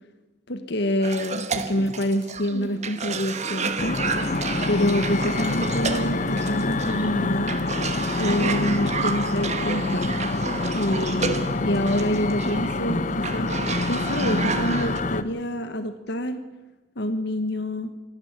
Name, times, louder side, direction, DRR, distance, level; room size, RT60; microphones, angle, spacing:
voice 1, 0.5-4.0 4.6-7.6 8.1-10.1 10.7-16.4 17.0-17.9, left 1 dB, 60° left, 9 dB, 1.4 m, -27 dB
Cough, 1.0-15.0, right 4 dB, 35° right, 1.2 m, -31 dB
sound 1, 3.8-15.2, left 2 dB, 40° left, 0.9 m, -26 dB
26.0 x 11.5 x 9.6 m, 1.1 s
head